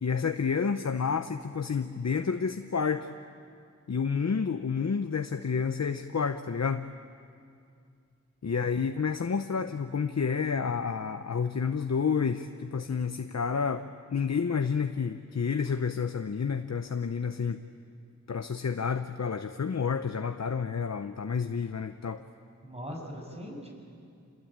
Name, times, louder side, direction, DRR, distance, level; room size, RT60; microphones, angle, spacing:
voice 1, 0.0-3.1 3.9-6.8 8.4-17.6 18.3-22.2, left 6 dB, 60° left, 8 dB, 0.8 m, -30 dB
voice 2, 8.5-8.9 22.6-23.7, equal, 20° right, 0 dB, 7.3 m, -41 dB
27.5 x 21.0 x 8.9 m, 2.3 s
wide cardioid pair, 45°, 30 cm